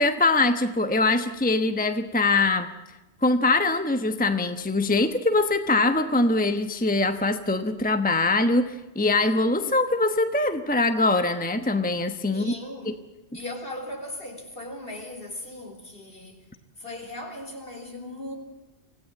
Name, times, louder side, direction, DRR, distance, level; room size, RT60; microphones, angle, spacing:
voice 1, 0.0-2.7 3.2-12.5 12.8-12.9, left 2 dB, 10° left, 1.0 m, -23 dB
voice 2, 12.3-13.1 13.3-16.5 16.8-18.3, left 1 dB, 50° left, 4.3 m, -38 dB
25.5 x 17.0 x 7.7 m
omnidirectional pair, 1.2 m